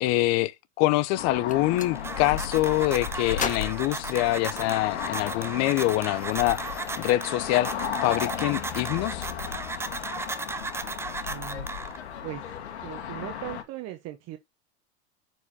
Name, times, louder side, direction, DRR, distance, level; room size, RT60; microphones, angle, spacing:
voice 1, 0.0-6.6 7.0-7.7 8.0-9.3, left 17 dB, 50° left, 0.6 m, -25 dB
sound 1, 1.2-13.6, left 9 dB, 85° left, 1.7 m, -35 dB
Gunshot gunfire, 1.4-1.9 3.3-4.8, left 6 dB, 25° left, 1.3 m, -35 dB
sound 2, 1.6-12.2, right 3 dB, 10° right, 0.4 m, -36 dB
voice 2, 11.2-11.7 12.2-12.5 12.8-14.4, right 14 dB, 50° right, 1.0 m, -38 dB
9.6 x 4.7 x 2.8 m
hypercardioid pair, 100°, 33 cm